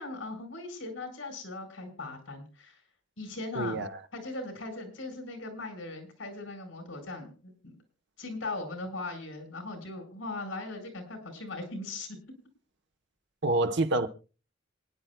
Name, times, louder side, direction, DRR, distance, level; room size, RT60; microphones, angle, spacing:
voice 1, 0.0-2.8 3.2-3.9 4.1-7.8 8.2-12.1, left 2 dB, 70° left, 4.9 m, -39 dB
voice 2, 3.5-4.0 13.4-14.1, right 2 dB, 65° right, 1.1 m, -27 dB
27.0 x 10.5 x 2.3 m
head